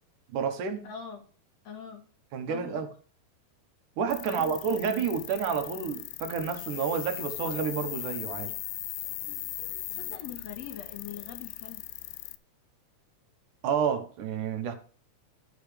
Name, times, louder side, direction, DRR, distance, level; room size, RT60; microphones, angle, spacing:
voice 1, 0.3-0.9 2.3-2.9 4.0-8.5 13.6-14.8, right 6 dB, 75° right, 2.5 m, -30 dB
voice 2, 0.8-1.3 1.6-2.0 2.5-2.8 4.3-4.6 9.6-11.8, left 7 dB, 60° left, 2.5 m, -43 dB
sound 1, 4.1-12.4, left 17 dB, 90° left, 2.2 m, -39 dB
12.0 x 6.8 x 3.3 m
omnidirectional pair, 3.8 m